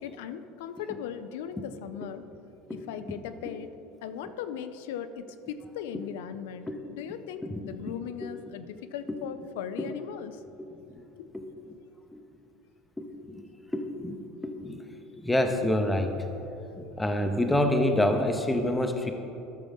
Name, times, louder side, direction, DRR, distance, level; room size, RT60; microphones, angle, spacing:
voice 1, 0.0-2.2 2.7-3.7 4.0-10.4 11.2-11.3, left 8 dB, 85° left, 10 dB, 0.4 m, -38 dB
voice 2, 13.0-13.4 13.7-14.8 15.2-16.2 16.7-19.1, left 1 dB, 5° left, 5 dB, 0.7 m, -27 dB
13.0 x 6.1 x 3.5 m, 2.9 s
supercardioid pair, 130°, 0 cm